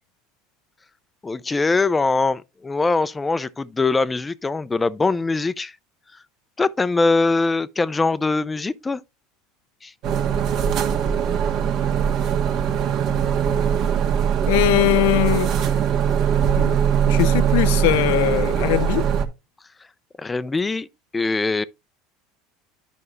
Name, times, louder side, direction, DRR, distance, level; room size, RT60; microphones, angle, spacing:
voice 1, 1.2-5.8 6.1-6.2 6.6-9.0 9.8-9.9 20.2-20.9 21.1-21.6, left 3 dB, 15° left, 0.5 m, -22 dB
sound 1, 10.0-19.3, right 8 dB, 55° right, 1.6 m, -21 dB
voice 2, 14.5-15.5 16.6-16.8 17.0-19.1, left 17 dB, 80° left, 0.4 m, -21 dB
11.0 x 5.4 x 3.1 m
supercardioid pair, 120°, 0 cm